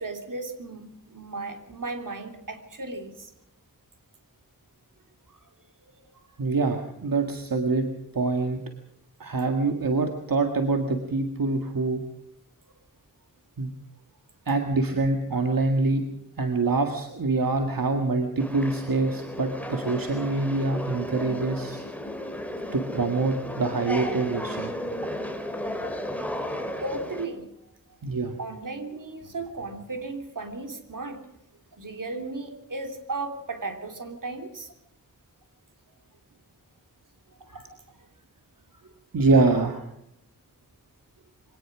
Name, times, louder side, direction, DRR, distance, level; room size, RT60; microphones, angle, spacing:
voice 1, 0.0-3.3 5.3-5.4 26.8-27.4 28.4-31.2 31.8-34.7 37.5-37.7 38.8-38.9, right 3 dB, 70° right, 6 dB, 3.2 m, -35 dB
voice 2, 6.4-7.9 8.1-8.6 9.2-12.0 13.6-13.7 14.5-16.0 16.4-21.8 22.7-24.7 28.0-28.4 37.5-37.6 39.1-39.9, right 3 dB, 85° right, 5 dB, 1.9 m, -25 dB
sound 1, 18.4-27.3, left 1 dB, 5° left, 3.3 m, -34 dB
23.5 x 18.5 x 6.2 m, 0.77 s
wide cardioid pair, 90°, 33 cm